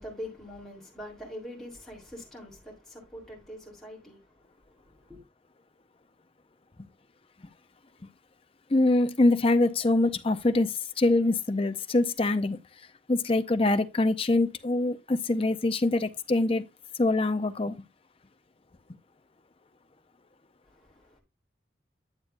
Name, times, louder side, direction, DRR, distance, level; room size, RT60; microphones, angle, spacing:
voice 1, 0.0-4.2 4.7-5.2 20.8-21.2, left 1 dB, ahead, 3.3 m, -43 dB
voice 2, 8.7-12.6 13.1-16.6 17.0-17.7, left 2 dB, 30° left, 0.6 m, -24 dB
9.7 x 7.7 x 2.5 m
head